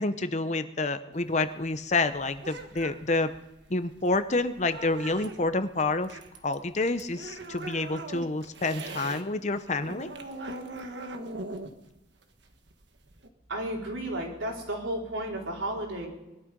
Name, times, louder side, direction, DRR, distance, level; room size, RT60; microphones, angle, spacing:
voice 1, 0.0-3.3 3.7-10.1, left 3 dB, 35° left, 10 dB, 0.8 m, -28 dB
sound 1, 1.1-9.2 9.5-13.3, right 2 dB, 60° right, 1.4 m, -41 dB
voice 2, 13.5-16.1, right 1 dB, 80° right, -2 dB, 4.6 m, -33 dB
21.5 x 12.5 x 5.3 m, 0.98 s
head